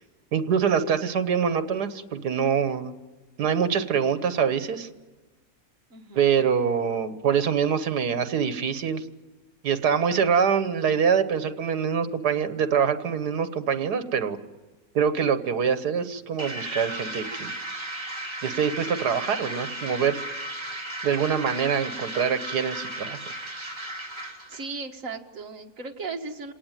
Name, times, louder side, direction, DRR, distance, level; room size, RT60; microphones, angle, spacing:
voice 1, 0.3-2.9 3.4-4.9 6.1-9.0 9.6-14.4 14.9-17.5 18.4-20.2 21.0-23.2, right 7 dB, 80° right, 11 dB, 1.8 m, -24 dB
voice 2, 5.9-6.5 24.5-26.5, right 4 dB, 55° right, 3 dB, 2.1 m, -36 dB
sound 1, 16.4-24.7, right 1 dB, 15° right, 2.4 m, -35 dB
27.0 x 18.5 x 9.0 m, 1.3 s
omnidirectional pair, 1.7 m